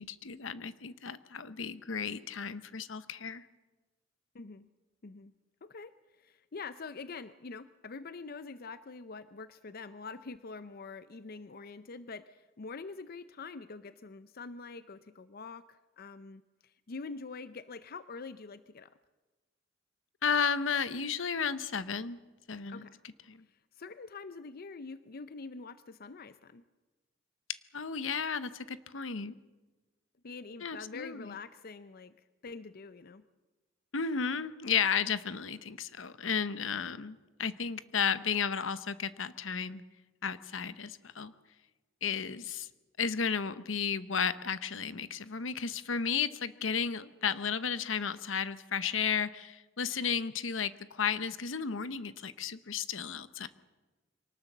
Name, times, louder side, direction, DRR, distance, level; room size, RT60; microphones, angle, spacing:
voice 1, 0.0-3.4 20.2-22.2 22.5-22.9 23.3-23.4 27.7-29.3 30.6-31.3 33.9-39.8 40.2-41.3 42.0-42.7 43.0-53.5, left 6 dB, 80° left, 14 dB, 0.9 m, -33 dB
voice 2, 4.3-4.7 5.0-5.3 5.6-18.9 22.7-23.0 23.5-26.6 30.2-33.2, left 4 dB, 50° left, 13 dB, 0.6 m, -45 dB
24.0 x 18.5 x 7.3 m, 1.2 s
head